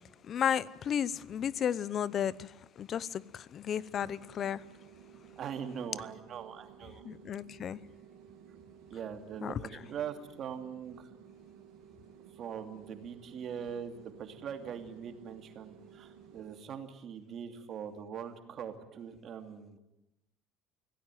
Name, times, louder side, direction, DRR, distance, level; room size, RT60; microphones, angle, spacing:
voice 1, 0.2-4.6 7.0-7.8 9.4-9.5, left 9 dB, 40° left, 20 dB, 0.8 m, -33 dB
sound 1, 4.0-16.7, right 8 dB, 80° right, 2.8 m, -55 dB
voice 2, 5.4-7.0 8.9-11.1 12.4-19.8, right 8 dB, 45° right, 7 dB, 2.8 m, -42 dB
25.0 x 17.0 x 9.3 m, 0.92 s
cardioid pair, 150°, 0 cm